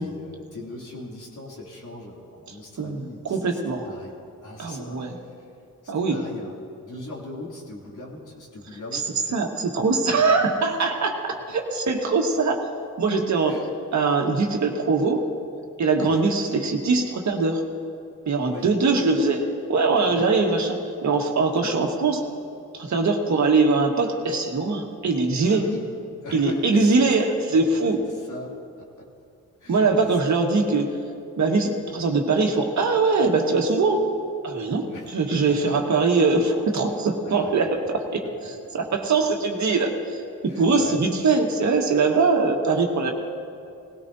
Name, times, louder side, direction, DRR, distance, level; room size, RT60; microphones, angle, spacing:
voice 1, 0.0-5.5 5.8-6.6 6.8-9.7 13.5-13.7 16.0-16.2 18.5-18.7 20.1-20.3 21.6-21.7 25.4-25.9 26.2-27.0 27.5-27.8 28.1-29.1 29.6-30.3 34.9-35.2 40.4-41.0, left 2 dB, 70° left, -4 dB, 3.0 m, -40 dB
voice 2, 2.8-3.9 4.6-5.1 5.9-6.2 8.9-9.0 9.3-12.7 13.0-13.6 13.9-15.2 15.8-17.6 18.3-22.2 22.7-25.6 26.3-28.0 29.7-31.0 31.4-34.1 34.4-38.2 38.7-43.1, right 3 dB, 60° right, 2 dB, 1.6 m, -22 dB
19.0 x 17.0 x 2.8 m, 2.5 s
cardioid pair, 85°, 32 cm